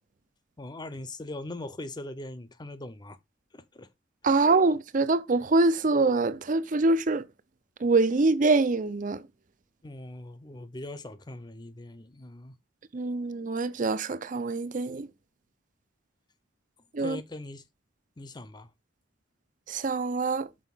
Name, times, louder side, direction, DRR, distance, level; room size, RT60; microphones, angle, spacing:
voice 1, 0.6-3.2 3.5-3.9 4.3-4.4 9.8-12.5 17.0-17.6 18.2-18.7, left 2 dB, 20° left, 0.6 m, -41 dB
voice 2, 4.2-7.2 7.8-9.2 12.9-15.1 16.9-17.2 19.7-20.5, right 3 dB, 40° right, 0.5 m, -24 dB
6.3 x 4.4 x 5.5 m
head